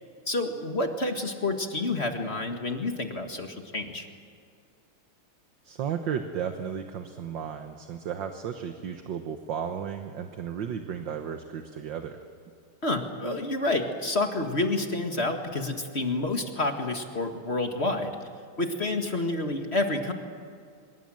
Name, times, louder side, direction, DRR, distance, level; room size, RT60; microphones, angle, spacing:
voice 1, 0.3-4.1 12.8-18.2 18.6-20.1, left 2 dB, 30° left, 4 dB, 1.9 m, -29 dB
voice 2, 5.6-12.2, right 8 dB, 65° right, 6 dB, 1.8 m, -34 dB
26.0 x 23.0 x 7.8 m, 2.3 s
omnidirectional pair, 2.3 m